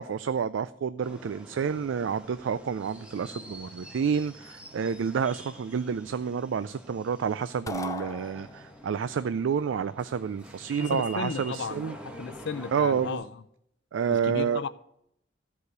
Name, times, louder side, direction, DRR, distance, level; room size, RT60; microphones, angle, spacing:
voice 1, 0.0-11.9 12.7-13.2 13.9-14.6, right 6 dB, 75° right, 0.4 m, -29 dB
sound 1, 1.0-13.1, equal, 5° right, 1.3 m, -47 dB
sound 2, 7.7-9.0, left 3 dB, 15° left, 0.5 m, -37 dB
voice 2, 10.8-13.3 14.1-14.7, left 5 dB, 65° left, 0.6 m, -34 dB
13.5 x 5.0 x 8.0 m
head